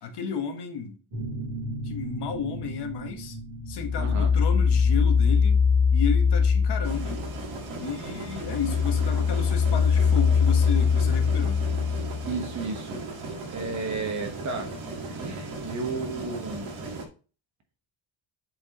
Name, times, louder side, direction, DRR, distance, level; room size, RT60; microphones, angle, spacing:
voice 1, 0.0-1.0 1.8-3.4 3.7-5.6 5.9-7.3 7.8-11.6, left 6 dB, 55° left, 1.3 m, -33 dB
sound 1, 1.1-10.5, right 2 dB, 55° right, 3.3 m, -39 dB
sound 2, 3.7-7.6 8.0-12.6, left 6 dB, 30° left, 0.4 m, -22 dB
voice 2, 4.0-4.3 12.2-13.0 13.5-14.7 15.1-16.7, right 4 dB, 35° right, 1.2 m, -33 dB
sound 3, 6.8-17.1, right 3 dB, 75° right, 1.8 m, -37 dB
7.7 x 4.7 x 2.9 m
cardioid pair, 175°, 48 cm